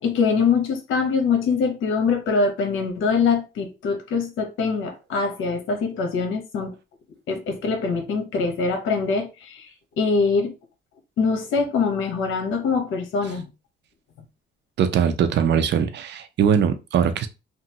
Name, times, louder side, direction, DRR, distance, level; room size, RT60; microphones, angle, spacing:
voice 1, 0.0-6.7 7.3-9.7 10.0-10.5 11.2-13.5, left 5 dB, 80° left, 0.9 m, -23 dB
voice 2, 14.8-17.3, right 7 dB, 60° right, 0.6 m, -21 dB
3.0 x 2.4 x 2.7 m
cardioid pair, 90°, 20 cm